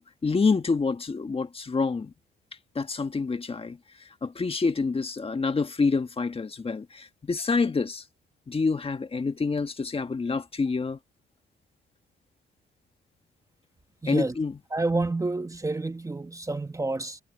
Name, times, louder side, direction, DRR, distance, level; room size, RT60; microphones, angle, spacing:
voice 1, 0.0-2.1 2.7-3.8 4.2-8.0 8.5-11.0 14.1-14.6, left 4 dB, 30° left, 1.6 m, -27 dB
voice 2, 14.0-14.3 14.7-17.2, right 2 dB, 15° right, 1.2 m, -29 dB
cardioid pair, 90°, 20 cm